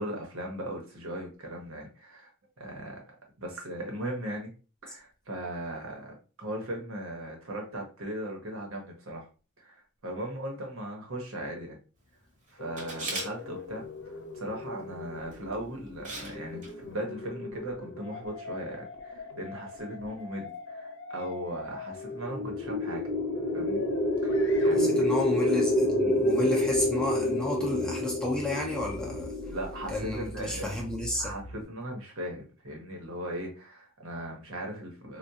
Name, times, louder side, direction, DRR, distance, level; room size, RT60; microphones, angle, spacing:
voice 1, 0.0-2.3 2.6-3.0 3.4-4.5 4.8-9.3 9.6-11.8 12.5-23.0 23.5-23.9 24.2-25.1 29.5-30.8 31.2-35.2, right 1 dB, 80° right, 1.1 m, -38 dB
sound 1, 12.6-31.6, left 2 dB, 60° left, 0.7 m, -43 dB
Camera, 12.8-13.3 15.3-15.5 16.0-16.3 16.6-16.7, right 2 dB, 40° right, 1.2 m, -36 dB
sound 2, 22.1-30.3, left 1 dB, 25° left, 0.9 m, -27 dB
voice 2, 24.8-29.3 29.9-31.3, left 1 dB, 5° left, 0.6 m, -32 dB
3.5 x 2.4 x 2.8 m
head